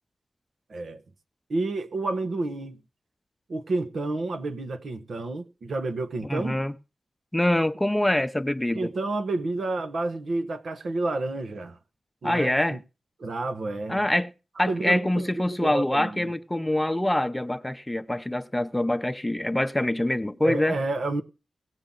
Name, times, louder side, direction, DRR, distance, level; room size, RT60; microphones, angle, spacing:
voice 1, 1.5-2.8 3.5-6.6 8.7-11.8 12.2-12.8 13.2-14.0 14.7-16.3 20.4-21.2, right 2 dB, 80° right, 1.1 m, -30 dB
voice 2, 6.3-6.7 7.3-8.9 12.2-12.8 13.9-14.3 14.6-20.8, left 1 dB, 10° left, 0.7 m, -25 dB
18.0 x 7.1 x 3.9 m
wide cardioid pair, 80°, 0 cm